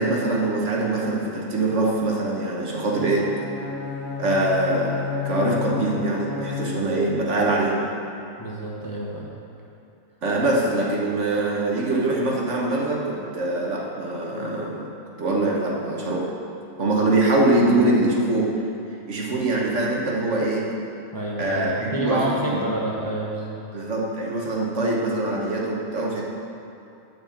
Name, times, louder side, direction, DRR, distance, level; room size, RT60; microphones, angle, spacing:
voice 1, 0.0-3.3 4.2-7.9 10.2-14.9 15.2-16.3 16.8-18.5 19.1-20.7 21.4-22.6 23.7-26.2, right 2 dB, 60° right, -3 dB, 1.5 m, -23 dB
Bowed string instrument, 2.9-7.1, left 6 dB, 50° left, 1.4 m, -31 dB
voice 2, 8.4-9.3 21.1-23.6, right 1 dB, 15° left, -4 dB, 0.9 m, -28 dB
8.6 x 4.6 x 7.2 m, 2.8 s
omnidirectional pair, 1.4 m